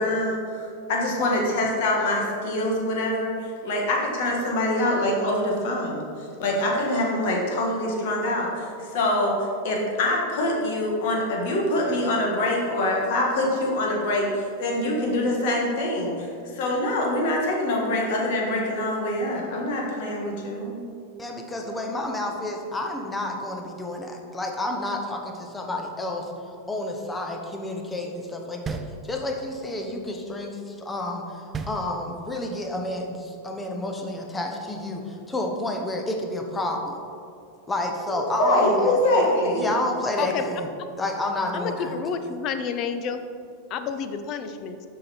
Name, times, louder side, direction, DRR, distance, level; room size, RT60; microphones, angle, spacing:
voice 1, 0.0-9.4 9.6-20.8 38.1-39.7, left 1 dB, 60° left, -1 dB, 1.7 m, -25 dB
voice 2, 21.2-26.3 26.7-36.9 37.7-39.0 39.5-40.7 41.0-42.0, left 1 dB, 10° left, 2 dB, 0.8 m, -30 dB
sound 1, 28.7-29.6 31.5-32.5, right 4 dB, 20° right, 0.4 m, -35 dB
voice 3, 41.5-43.2 43.7-44.8, left 6 dB, 40° left, 9 dB, 0.5 m, -29 dB
6.5 x 5.6 x 4.4 m, 2.4 s
supercardioid pair, 140°, 0 cm